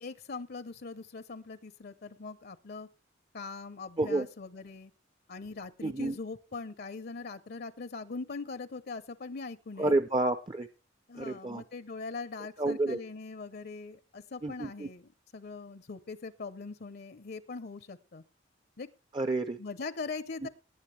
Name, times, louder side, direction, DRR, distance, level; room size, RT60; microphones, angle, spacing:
voice 1, 0.0-2.9 3.3-4.9 5.3-9.9 11.1-18.2 18.8-18.9 19.6-20.5, left 4 dB, 55° left, 15 dB, 0.7 m, -41 dB
voice 2, 5.8-6.2 9.8-10.7 11.1-11.6 12.6-13.0 14.4-14.9 19.1-19.6 20.4-20.5, right 2 dB, 25° right, 11 dB, 0.6 m, -29 dB
18.5 x 9.1 x 3.3 m, 0.31 s
head